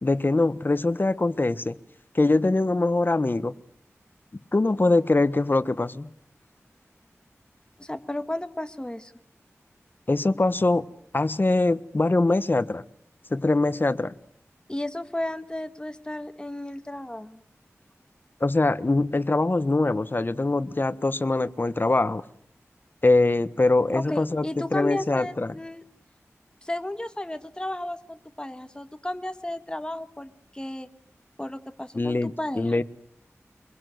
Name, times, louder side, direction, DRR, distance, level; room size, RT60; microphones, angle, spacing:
voice 1, 0.0-1.8 2.1-3.5 4.5-6.1 10.1-10.8 11.1-12.8 13.3-14.2 18.4-22.2 23.0-24.4 24.7-25.5 31.9-32.8, left 2 dB, 40° left, 1.2 m, -23 dB
voice 2, 7.8-9.1 14.7-17.4 23.9-25.8 26.6-30.9 31.4-32.8, left 1 dB, 15° left, 1.8 m, -33 dB
24.5 x 22.5 x 7.9 m
wide cardioid pair, 70°, 5 cm